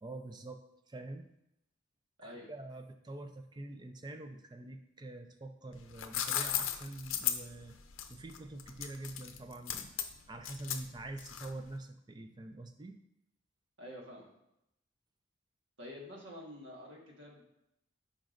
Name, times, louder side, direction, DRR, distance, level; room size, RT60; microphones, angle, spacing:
voice 1, 0.0-0.6 0.9-1.3 2.2-7.8 8.1-9.9 10.3-13.0, right 2 dB, 20° right, 6 dB, 0.4 m, -45 dB
sound 1, 5.7-11.7, left 10 dB, 85° left, 0.6 m, -36 dB
voice 2, 13.8-14.3 15.8-17.4, left 1 dB, 65° right, -1 dB, 1.5 m, -48 dB
9.0 x 5.2 x 2.5 m, 0.83 s
head